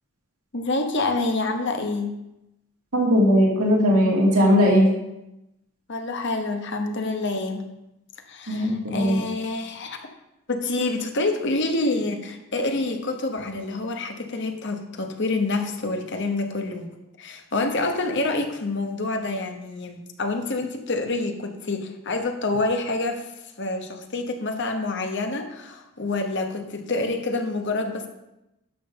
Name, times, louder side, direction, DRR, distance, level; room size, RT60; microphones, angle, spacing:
voice 1, 0.5-2.2 5.9-7.6 8.3-10.0 10.5-16.9 17.2-23.3 23.6-28.1, left 2 dB, 50° left, 5 dB, 1.1 m, -27 dB
voice 2, 2.9-4.8 8.5-9.2, equal, 85° right, -3 dB, 2.8 m, -18 dB
11.5 x 3.9 x 6.5 m, 0.91 s
head